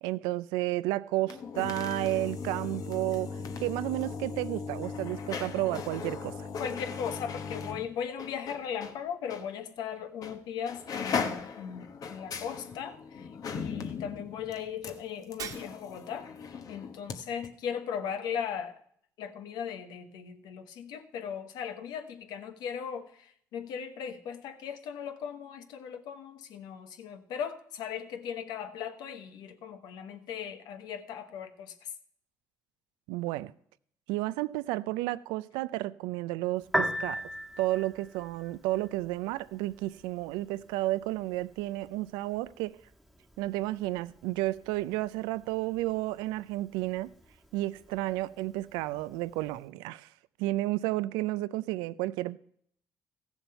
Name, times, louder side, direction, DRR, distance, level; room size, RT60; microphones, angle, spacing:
voice 1, 0.0-3.3 3.6-6.3 33.1-33.5 34.1-37.2 37.6-42.8 43.4-47.1 47.5-50.1 50.4-52.4, right 17 dB, 85° right, 0.4 m, -32 dB
sound 1, 1.2-9.0 9.3-9.4 10.2-10.4 10.6-17.2 17.4-17.5, left 5 dB, 55° left, 1.2 m, -38 dB
voice 2, 6.6-16.3 16.7-18.7 19.2-31.9, left 8 dB, 75° left, 1.1 m, -38 dB
Shatter, 15.4-16.2, right 7 dB, 60° right, 1.5 m, -42 dB
Piano, 36.6-49.6, equal, ahead, 1.4 m, -41 dB
14.5 x 7.0 x 5.7 m
supercardioid pair, 65°, 7 cm